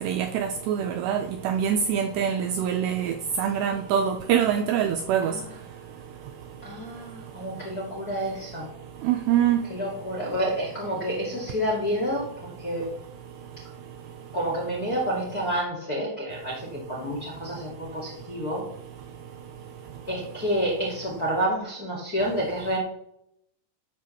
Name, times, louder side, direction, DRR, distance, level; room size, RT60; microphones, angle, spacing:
voice 1, 0.0-5.3 9.0-9.6, right 8 dB, 85° right, 2.5 m, -24 dB
voice 2, 6.6-8.7 9.7-12.9 14.3-18.6 20.1-22.8, equal, 40° left, 1.4 m, -29 dB
12.0 x 4.8 x 7.0 m
omnidirectional pair, 5.6 m